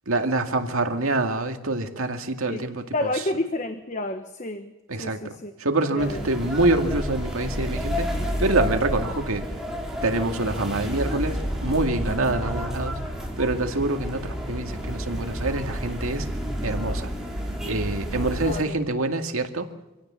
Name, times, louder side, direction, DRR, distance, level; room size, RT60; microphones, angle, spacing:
voice 1, 0.1-3.2 4.9-5.2 5.6-8.1 8.4-9.5 10.0-13.0 13.4-16.3 16.6-17.1 17.6-19.7, right 2 dB, 85° right, 5 dB, 2.1 m, -26 dB
voice 2, 2.9-4.7 5.0-5.5 5.9-6.2 12.1-12.3 18.5-18.7, left 1 dB, 35° left, 7 dB, 1.1 m, -30 dB
sound 1, 6.0-18.6, equal, ahead, 4.1 m, -30 dB
26.0 x 17.0 x 7.1 m, 1.1 s
head